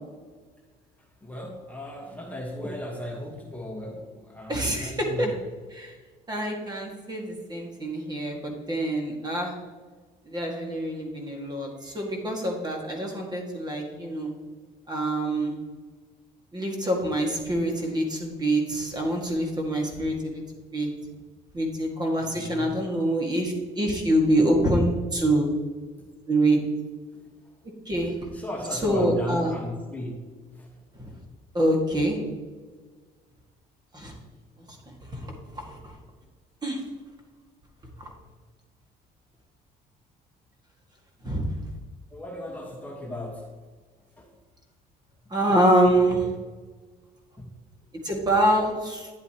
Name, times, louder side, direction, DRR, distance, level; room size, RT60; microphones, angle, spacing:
voice 1, 1.2-5.4 22.2-22.7 28.3-30.2 30.5-30.8 42.1-43.5 44.2-44.3 45.5-45.6 47.4-47.5, left 1 dB, 10° left, -2 dB, 1.3 m, -36 dB
voice 2, 4.5-5.3 5.7-5.9 6.3-9.5 10.3-14.3 14.9-15.6 16.5-20.4 20.7-20.9 21.5-25.5 26.3-26.6 27.9-28.1 28.8-29.5 31.0-31.1 31.5-32.2 33.9-34.1 35.1-35.9 36.6-36.8 38.0-38.1 41.2-41.4 45.3-46.2 48.0-49.1, right 1 dB, 25° right, 1 dB, 2.0 m, -25 dB
10.0 x 8.0 x 2.9 m, 1.4 s
cardioid pair, 110°, 17 cm